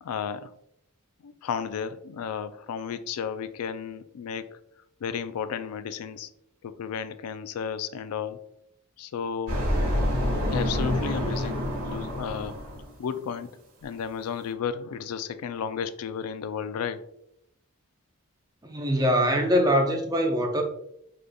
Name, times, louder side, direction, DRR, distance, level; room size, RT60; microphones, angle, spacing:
voice 1, 0.0-0.5 1.2-4.6 5.0-6.3 6.6-8.4 9.0-9.7 10.5-12.6 13.0-17.0, left 7 dB, 90° left, 12 dB, 0.4 m, -33 dB
atmosphere - exteriour hospital (with bus), 9.5-12.9, equal, 70° right, 1.4 m, -27 dB
voice 2, 18.6-20.6, equal, 20° right, 3 dB, 0.6 m, -23 dB
5.0 x 3.8 x 2.2 m, 0.77 s
head